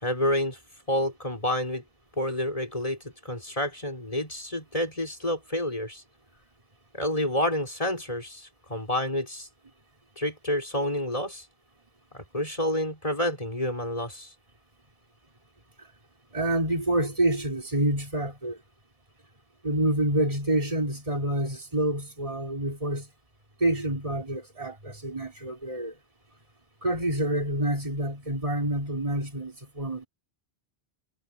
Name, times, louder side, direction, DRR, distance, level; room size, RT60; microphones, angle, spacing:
voice 1, 0.0-0.6 0.9-1.8 2.2-6.0 6.9-9.5 10.2-11.5 12.1-14.3, left 1 dB, 35° left, 5.1 m, -29 dB
voice 2, 16.3-18.6 19.6-23.1 23.6-25.9 26.8-30.1, right 1 dB, 30° right, 4.2 m, -27 dB
omnidirectional pair, 1.1 m